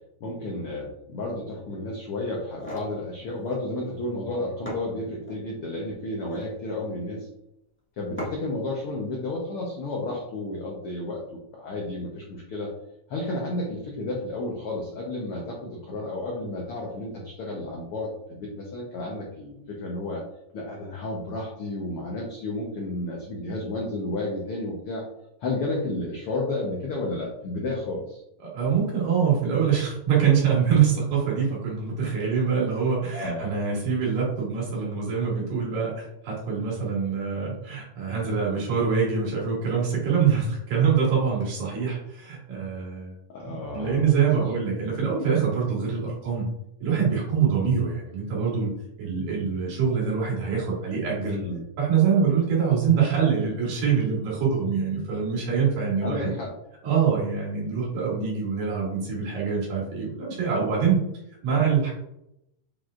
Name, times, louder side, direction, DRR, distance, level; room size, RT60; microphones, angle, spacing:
voice 1, 0.2-7.3 8.0-12.7 13.1-20.2 20.5-25.0 25.4-28.2 33.1-33.5 43.3-44.1 44.4-44.5 51.2-51.6 56.0-56.5, left 2 dB, 80° left, -2 dB, 1.2 m, -32 dB
sound 1, 2.4-2.9 4.2-4.3 4.7-5.4 6.1-6.6 8.2-8.6, equal, 15° left, 0.4 m, -37 dB
voice 2, 28.4-43.1 43.5-46.5 46.8-48.7 49.0-51.4 51.8-56.3 56.8-61.0 61.4-61.9, right 6 dB, 85° right, -5 dB, 3.9 m, -24 dB
7.5 x 5.1 x 2.4 m, 0.82 s
omnidirectional pair, 3.8 m